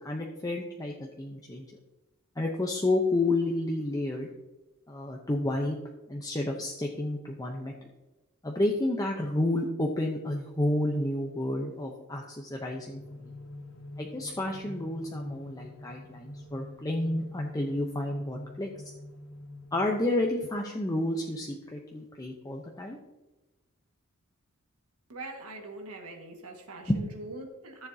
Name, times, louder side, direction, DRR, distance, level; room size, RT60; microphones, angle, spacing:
voice 1, 0.0-1.7 2.4-4.3 4.9-5.8 6.1-7.7 8.4-13.3 14.0-18.7 19.7-23.0 26.9-27.0, left 1 dB, 15° left, 0 dB, 0.7 m, -30 dB
sound 1, 12.6-20.5, left 1 dB, 75° left, 1.2 m, -46 dB
voice 2, 25.1-27.9, right 2 dB, 80° right, 2 dB, 1.7 m, -42 dB
14.0 x 7.1 x 2.7 m, 1.1 s
head